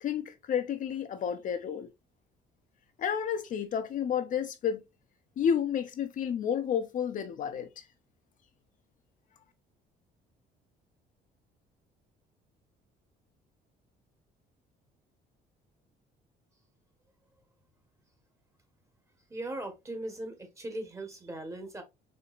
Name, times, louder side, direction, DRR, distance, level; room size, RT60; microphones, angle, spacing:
voice 1, 0.0-1.9 3.0-4.8 5.4-7.8, left 8 dB, 50° left, 0.6 m, -31 dB
voice 2, 19.3-21.8, right 1 dB, 15° right, 1.1 m, -39 dB
4.5 x 2.7 x 2.3 m
cardioid pair, 110°, 17 cm